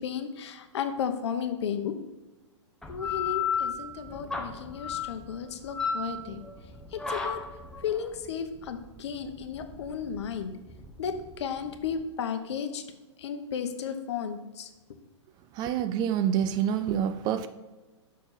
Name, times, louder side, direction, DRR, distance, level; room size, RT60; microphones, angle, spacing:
voice 1, 0.0-1.9 2.9-6.4 6.9-7.4 7.8-10.5 11.0-12.8 13.2-14.7, left 7 dB, 60° left, 0.9 m, -34 dB
sound 1, 2.8-12.0, left 6 dB, 5° left, 0.8 m, -34 dB
voice 2, 15.6-17.5, right 9 dB, 25° right, 0.4 m, -27 dB
6.3 x 4.4 x 5.6 m
hypercardioid pair, 115°, 16 cm